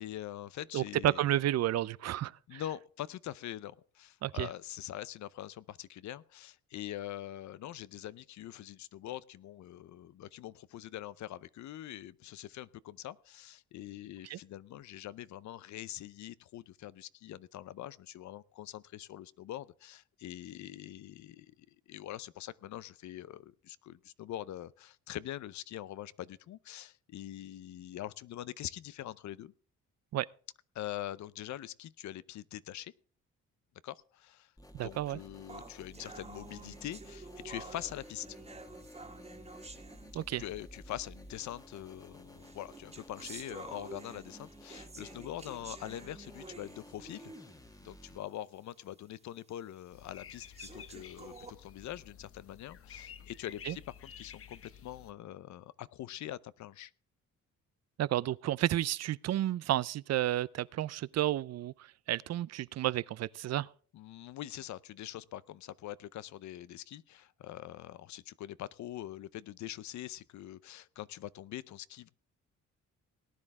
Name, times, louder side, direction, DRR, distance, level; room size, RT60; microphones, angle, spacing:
voice 1, 0.0-1.3 2.5-29.5 30.7-32.9 33.8-34.5 34.8-38.3 40.1-47.5 47.8-56.9 63.9-72.1, left 13 dB, 70° left, 0.7 m, -44 dB
voice 2, 0.7-2.6 4.2-4.5 14.3-14.4 30.1-30.3 34.7-35.2 40.1-40.4 53.7-53.8 58.0-61.7 62.1-63.7, right 13 dB, 60° right, 0.5 m, -31 dB
sound 1, 34.6-48.2, equal, 10° left, 1.4 m, -54 dB
sound 2, 35.5-40.6 41.5-41.6 42.4-47.6 48.1-48.2 48.7-48.8 49.5-49.6 50.3-51.5, right 3 dB, 20° right, 1.8 m, -50 dB
sound 3, 49.9-55.1, left 8 dB, 45° left, 1.0 m, -51 dB
18.5 x 10.0 x 3.6 m
cardioid pair, 90°, 30 cm